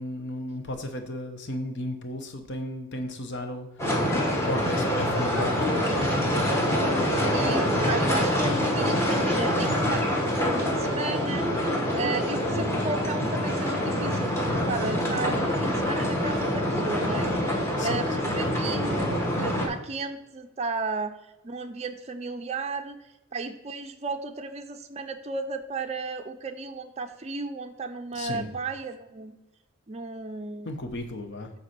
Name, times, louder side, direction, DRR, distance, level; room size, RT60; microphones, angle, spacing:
voice 1, 0.0-3.7 4.3-6.1 17.8-18.3 28.1-28.5 30.6-31.5, left 1 dB, 55° left, 6 dB, 1.0 m, -34 dB
sound 1, 3.8-19.7, equal, 10° left, 1.3 m, -25 dB
voice 2, 6.8-11.5 12.0-17.3 17.8-21.1 21.4-23.0 23.3-29.3 29.9-30.7, right 3 dB, 30° right, 6 dB, 0.5 m, -34 dB
8.2 x 4.2 x 5.9 m, 1.0 s
head